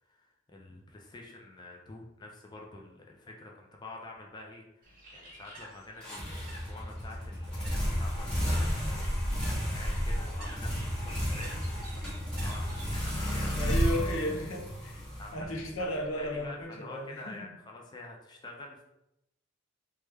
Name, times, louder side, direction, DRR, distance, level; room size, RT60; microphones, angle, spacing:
voice 1, 0.1-9.2 9.7-11.7 11.9-13.6 15.2-15.5 15.8-15.9 16.2-18.8, left 2 dB, 20° left, 0.3 m, -47 dB
Bird, 4.8-13.7, right 1 dB, 45° right, 0.7 m, -51 dB
sound 1, 6.0-15.8, equal, 5° left, 0.8 m, -32 dB
voice 2, 13.6-15.1 15.3-17.5, equal, 90° left, 0.6 m, -34 dB
3.1 x 2.2 x 3.2 m
head